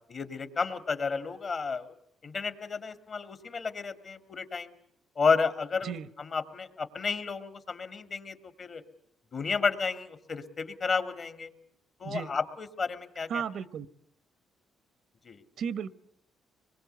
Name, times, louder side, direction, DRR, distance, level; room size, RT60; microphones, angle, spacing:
voice 1, 0.1-1.9 2.2-4.7 5.2-5.9 6.2-8.8 9.3-11.5 12.0-13.4 15.3-15.4, left 5 dB, 45° left, 10 dB, 2.3 m, -31 dB
voice 2, 13.3-13.9 15.6-15.9, right 7 dB, 65° right, 17 dB, 1.0 m, -34 dB
25.0 x 22.0 x 8.1 m, 0.70 s
cardioid pair, 90°, 0 cm